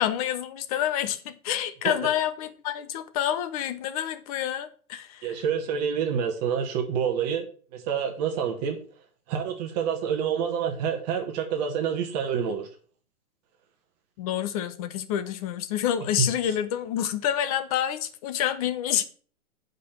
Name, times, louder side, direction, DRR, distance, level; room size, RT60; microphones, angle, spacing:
voice 1, 0.0-5.3 14.2-19.0, left 10 dB, 25° left, 0.7 m, -28 dB
voice 2, 5.2-7.4 7.7-8.8 9.3-12.7 16.2-16.3, right 7 dB, 30° right, 1.2 m, -27 dB
8.4 x 5.3 x 5.8 m
hypercardioid pair, 150°, 44 cm